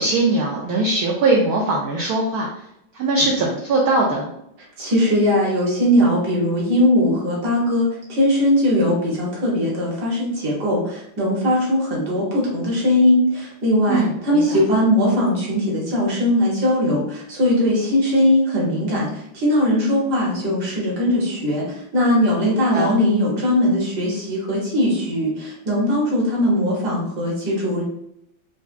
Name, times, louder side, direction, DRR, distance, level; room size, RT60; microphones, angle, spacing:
voice 1, 0.0-2.5 2.9-4.3 13.9-14.6 22.7-22.9, right 2 dB, 75° right, -2 dB, 0.8 m, -20 dB
voice 2, 4.8-27.8, left 1 dB, 55° right, -4 dB, 1.6 m, -20 dB
4.7 x 2.2 x 2.5 m, 0.77 s
omnidirectional pair, 2.2 m